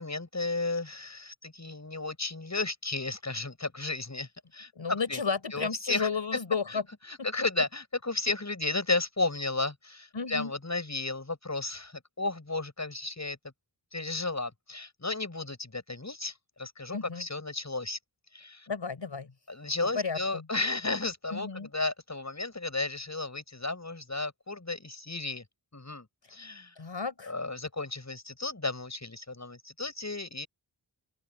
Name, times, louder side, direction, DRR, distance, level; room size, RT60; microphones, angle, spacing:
voice 1, 0.0-5.2 5.5-6.1 6.7-6.8 7.1-13.4 13.9-18.0 18.3-18.7 19.5-25.4 25.7-26.7 27.3-30.5, left 3 dB, 35° left, 7.6 m, -33 dB
voice 2, 4.7-6.8 10.1-10.5 16.9-17.2 18.7-19.3 19.9-20.5 21.3-21.7 26.8-27.3, left 5 dB, 70° left, 4.7 m, -32 dB
open air
wide cardioid pair, 70°, 46 cm